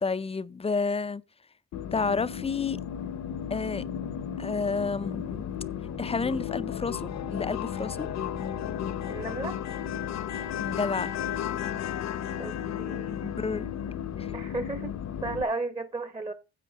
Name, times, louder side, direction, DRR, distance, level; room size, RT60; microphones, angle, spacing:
voice 1, 0.0-1.2 1.9-2.8 3.5-3.8 4.4-5.4 6.0-8.1 10.6-11.1 13.2-13.7 14.2-14.3, left 4 dB, 20° left, 0.5 m, -30 dB
sound 1, 1.7-15.4, left 9 dB, 60° left, 0.9 m, -34 dB
sound 2, 3.2-8.5, right 6 dB, 75° right, 3.4 m, -50 dB
voice 2, 9.1-9.6 12.4-13.2 14.3-15.0 15.2-16.3, right 3 dB, 15° right, 0.9 m, -34 dB
10.0 x 7.7 x 5.0 m
cardioid pair, 90°, 30 cm